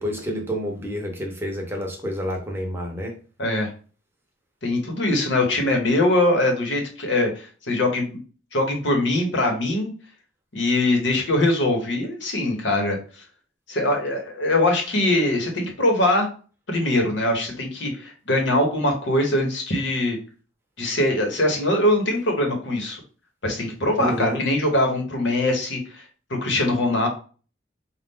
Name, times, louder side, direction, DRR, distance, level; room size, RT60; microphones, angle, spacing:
voice 1, 0.0-3.1 24.0-24.4, equal, 10° right, 0.7 m, -28 dB
voice 2, 3.4-3.7 4.6-8.1 8.5-9.9 10.5-13.0 13.7-16.3 16.7-20.2 20.8-23.0 23.4-26.0 26.3-27.1, left 1 dB, 75° left, 1.1 m, -22 dB
4.1 x 2.4 x 3.6 m
head